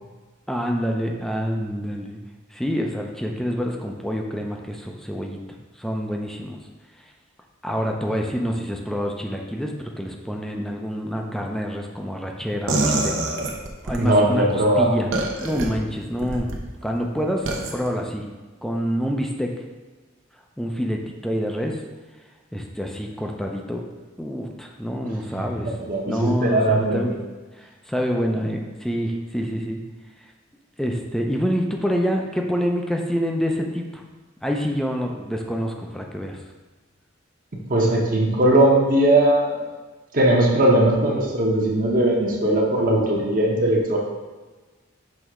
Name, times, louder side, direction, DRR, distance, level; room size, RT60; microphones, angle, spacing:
voice 1, 0.5-2.2 2.5-5.4 5.8-6.6 7.6-13.2 13.8-15.1 15.4-16.5 16.8-18.2 18.6-19.6 20.6-21.8 22.5-23.8 24.2-25.7 26.1-27.1 27.5-29.8 30.8-34.0 34.4-36.4, equal, ahead, 1 dB, 0.5 m, -27 dB
sound 1, 12.7-14.0 15.1-15.7 16.2-16.6 17.5-17.7, right 2 dB, 75° right, 0.8 m, -24 dB
voice 2, 14.0-14.9 25.8-27.1 37.7-39.6 40.1-44.0, right 1 dB, 45° right, -1 dB, 0.9 m, -19 dB
6.3 x 3.4 x 4.9 m, 1.3 s
head